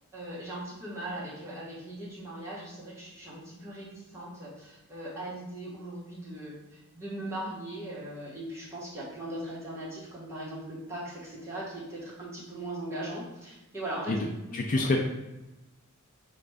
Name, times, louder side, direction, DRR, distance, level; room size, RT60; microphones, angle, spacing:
voice 1, 0.1-14.8, right 1 dB, 15° right, -8 dB, 1.2 m, -39 dB
voice 2, 14.5-15.0, left 2 dB, 40° left, 1 dB, 0.4 m, -26 dB
5.0 x 2.5 x 3.4 m, 0.98 s
head